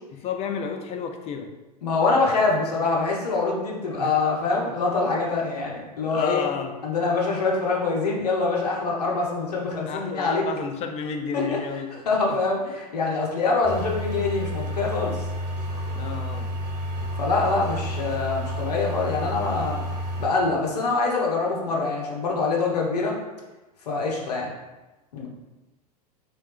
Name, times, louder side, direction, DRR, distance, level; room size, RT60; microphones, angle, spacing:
voice 1, 0.1-1.5 2.1-2.4 3.9-4.1 6.1-6.7 9.9-12.0 12.3-12.4 16.0-16.5, left 6 dB, 30° left, 5 dB, 0.5 m, -31 dB
voice 2, 1.8-6.5 6.8-10.4 11.3-11.6 12.1-15.2 17.2-19.8 20.2-23.1 23.9-24.5 25.1-25.3, left 3 dB, 75° left, -2 dB, 0.8 m, -24 dB
sound 1, 13.6-20.3, equal, 70° right, 1.2 m, -30 dB
3.1 x 3.1 x 3.2 m, 1.1 s
figure-of-eight pair, 85°, 20 cm